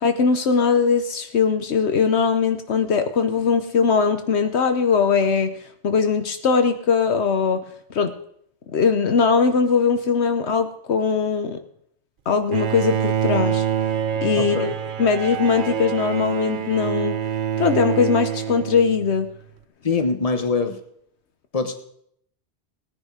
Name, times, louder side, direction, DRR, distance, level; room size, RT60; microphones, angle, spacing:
voice 1, 0.0-5.5 5.8-7.6 7.9-8.1 8.7-11.6 12.3-13.6 14.2-14.7 15.0-17.2 17.6-19.3, left 5 dB, 70° left, 8 dB, 1.1 m, -20 dB
Bowed string instrument, 12.5-19.3, right 9 dB, 55° right, 0.7 m, -26 dB
voice 2, 14.4-14.7 19.8-20.8 21.5-21.8, left 4 dB, 35° left, 6 dB, 1.3 m, -23 dB
18.0 x 10.0 x 4.9 m, 0.70 s
omnidirectional pair, 1.2 m